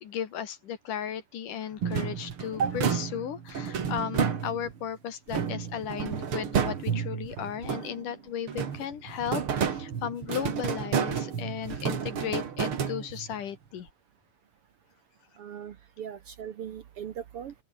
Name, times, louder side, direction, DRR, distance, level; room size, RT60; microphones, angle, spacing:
voice 1, 0.0-13.9, left 9 dB, 70° left, 3.5 m, -35 dB
sound 1, 1.8-4.8 5.3-8.1 8.5-13.4, right 7 dB, 45° right, 2.6 m, -31 dB
voice 2, 15.4-17.5, right 7 dB, 60° right, 1.5 m, -36 dB
open air
omnidirectional pair, 3.9 m